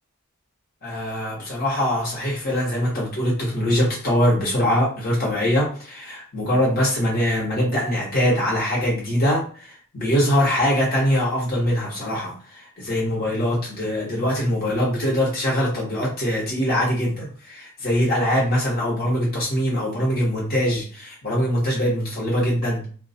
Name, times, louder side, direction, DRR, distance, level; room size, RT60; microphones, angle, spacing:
voice 1, 0.8-22.9, equal, 45° left, -4 dB, 1.0 m, -23 dB
2.9 x 2.3 x 4.1 m, 0.42 s
head